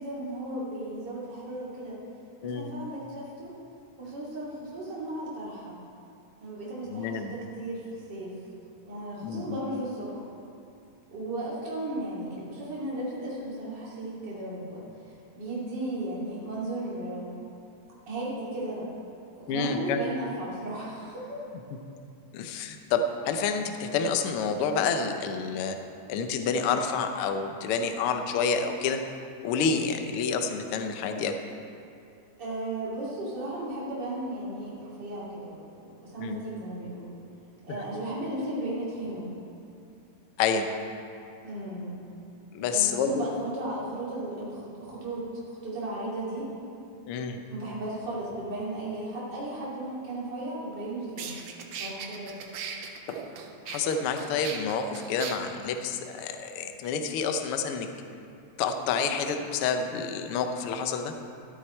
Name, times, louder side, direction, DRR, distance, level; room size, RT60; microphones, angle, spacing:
voice 1, 0.0-2.0 2.4-3.5 4.0-5.8 6.4-8.4 8.8-10.2 11.1-17.4 18.1-18.9 19.3-21.4 32.4-37.1 37.6-39.3 41.4-42.0 42.6-46.5 47.5-51.3 51.8-52.5, right 1 dB, 35° right, -7 dB, 3.2 m, -35 dB
voice 2, 6.9-7.4 9.2-9.6 19.5-20.0 22.3-25.8 26.1-29.0 29.4-31.4 36.2-36.5 40.4-40.7 42.5-43.3 47.1-47.4 53.7-57.9 58.6-61.1, left 5 dB, 90° left, 6 dB, 1.2 m, -28 dB
sound 1, 50.7-50.8 51.2-55.3, right 7 dB, 70° right, 1.6 m, -38 dB
13.0 x 10.5 x 4.4 m, 2.6 s
omnidirectional pair, 3.6 m